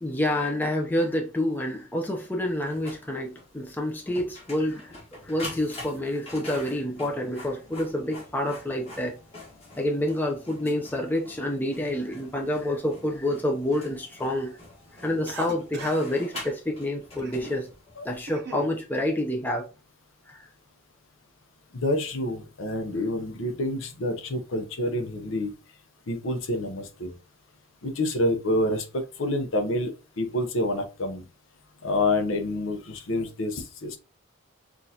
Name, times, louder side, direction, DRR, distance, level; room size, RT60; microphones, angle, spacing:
voice 1, 0.0-5.0 5.2-9.2 9.8-14.6 15.0-17.7 18.0-19.7 20.3-20.5, left 1 dB, 10° left, 0.5 m, -28 dB
Printer, 2.7-18.0, left 2 dB, 30° left, 1.5 m, -45 dB
Cough, 15.3-16.1 16.3-16.5 17.2-17.6 18.0-18.7, right 4 dB, 50° right, 0.7 m, -39 dB
voice 2, 21.7-25.5 26.1-27.1 27.8-29.9 30.2-31.2 31.8-34.0, left 1 dB, 65° left, 0.7 m, -28 dB
6.0 x 2.5 x 2.8 m
head